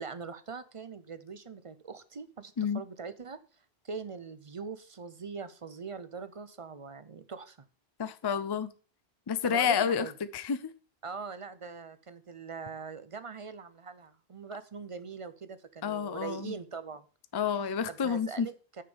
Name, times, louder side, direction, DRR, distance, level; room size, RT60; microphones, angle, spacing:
voice 1, 0.0-3.4 3.8-7.7 9.4-10.1 11.0-17.1 17.6-18.8, right 5 dB, 40° right, 0.6 m, -42 dB
voice 2, 8.0-8.7 9.3-10.1 10.3-10.7 15.8-16.5 17.3-18.5, left 7 dB, 35° left, 0.4 m, -29 dB
6.7 x 5.2 x 6.9 m
omnidirectional pair, 1.1 m